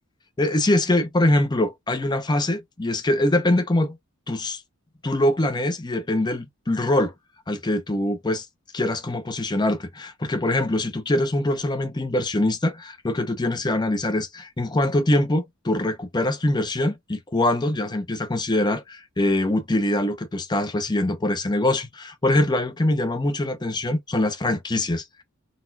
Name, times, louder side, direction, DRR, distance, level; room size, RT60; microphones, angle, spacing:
voice 1, 0.4-4.0 4.3-4.6 5.0-7.1 7.5-8.5 8.7-25.2, left 1 dB, 20° left, 0.6 m, -23 dB
4.0 x 2.3 x 2.6 m
head